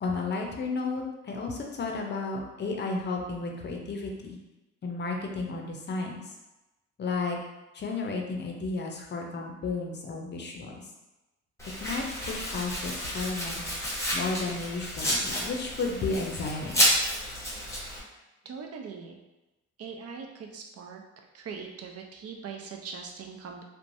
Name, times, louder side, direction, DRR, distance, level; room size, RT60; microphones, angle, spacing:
voice 1, 0.0-4.4 4.8-6.3 7.0-7.4 7.7-10.9 11.8-13.6 14.1-16.9, left 3 dB, 35° left, 1 dB, 0.5 m, -33 dB
Domestic sounds home sounds, 11.6-18.0, equal, 10° left, 0.8 m, -30 dB
voice 2, 18.4-19.2 19.8-21.0 21.3-23.6, right 5 dB, 55° right, 2 dB, 0.5 m, -41 dB
3.1 x 2.1 x 2.5 m, 1.0 s
cardioid pair, 90°, 30 cm